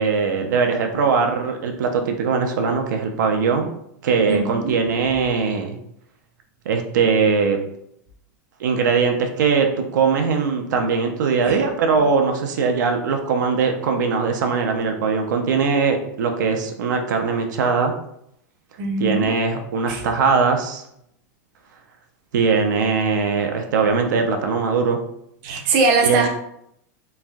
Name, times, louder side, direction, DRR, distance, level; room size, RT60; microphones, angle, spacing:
voice 1, 0.0-3.7 4.0-5.8 6.7-7.6 8.6-17.9 19.0-20.8 22.3-25.0 26.0-26.2, right 5 dB, 85° right, 4 dB, 0.5 m, -20 dB
voice 2, 4.3-4.8 11.5-11.6 18.8-19.3 19.9-20.0 25.4-26.3, right 3 dB, 35° right, 2 dB, 0.5 m, -21 dB
3.2 x 2.5 x 2.2 m, 0.75 s
supercardioid pair, 165°, 10 cm